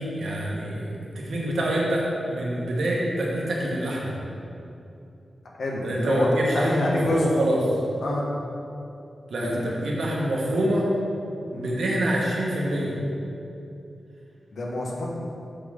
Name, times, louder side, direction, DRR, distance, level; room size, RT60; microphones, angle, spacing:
voice 1, 0.1-0.9 1.1-4.1 5.8-7.6 9.3-10.9 11.5-12.9, right 1 dB, 80° right, -4 dB, 1.3 m, -26 dB
voice 2, 5.6-6.3 6.5-7.3 8.0-8.2 9.4-9.6 11.5-11.8 14.5-15.1, left 1 dB, 75° left, -3 dB, 1.2 m, -27 dB
6.9 x 5.6 x 3.6 m, 2.7 s
wide cardioid pair, 90°, 0 cm